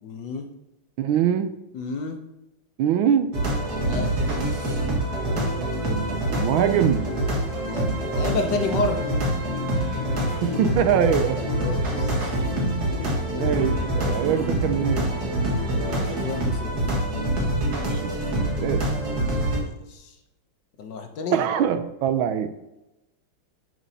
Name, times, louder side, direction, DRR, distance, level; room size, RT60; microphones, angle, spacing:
voice 1, 0.0-0.5 1.7-2.2 3.7-4.1 7.6-7.9 8.1-9.1 11.5-12.4 13.1-13.5 15.7-16.9 19.6-20.2 20.8-21.4, left 3 dB, 65° left, 5 dB, 1.3 m, -31 dB
voice 2, 1.0-1.5 2.8-3.3 5.3-7.1 10.4-11.4 12.8-15.5 17.9-18.1 18.6-18.9 21.3-22.5, right 9 dB, 80° right, 10 dB, 1.4 m, -24 dB
sound 1, 3.3-19.6, right 1 dB, 50° right, 2.1 m, -25 dB
10.5 x 6.1 x 2.8 m, 0.95 s
omnidirectional pair, 2.2 m